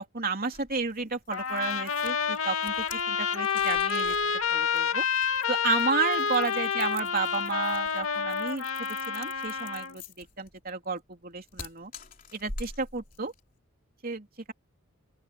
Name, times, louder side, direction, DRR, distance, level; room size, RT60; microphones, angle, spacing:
voice 1, 0.0-4.2 4.5-5.0 5.5-11.9 12.3-13.3 14.0-14.5, right 4 dB, 45° right, 3.2 m, -32 dB
sound 1, 0.5-13.5, left 3 dB, 40° left, 3.7 m, -46 dB
Trumpet, 1.3-10.0, left 6 dB, 80° left, 2.4 m, -29 dB
open air
head